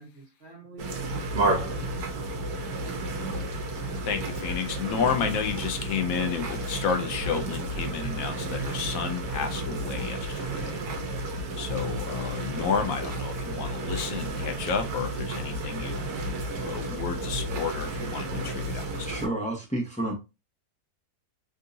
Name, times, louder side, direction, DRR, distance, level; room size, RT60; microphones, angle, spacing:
voice 1, 0.0-2.1, right 2 dB, 50° right, 1.5 m, -47 dB
sound 1, 0.8-19.3, right 2 dB, 85° right, 1.2 m, -32 dB
voice 2, 4.1-10.8 11.6-16.0 16.6-19.1, left 6 dB, 75° left, 1.0 m, -31 dB
voice 3, 19.0-20.1, right 1 dB, 5° left, 0.8 m, -30 dB
3.5 x 2.7 x 2.6 m
omnidirectional pair, 1.6 m